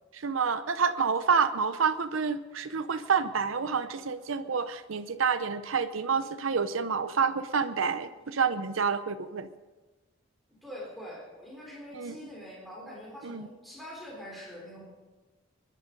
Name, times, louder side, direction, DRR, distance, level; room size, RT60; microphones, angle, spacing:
voice 1, 0.1-9.5 11.9-12.2 13.2-13.5, right 6 dB, 90° right, 10 dB, 0.7 m, -28 dB
voice 2, 10.6-14.9, equal, ahead, -4 dB, 4.0 m, -44 dB
23.5 x 11.0 x 5.3 m, 1.2 s
head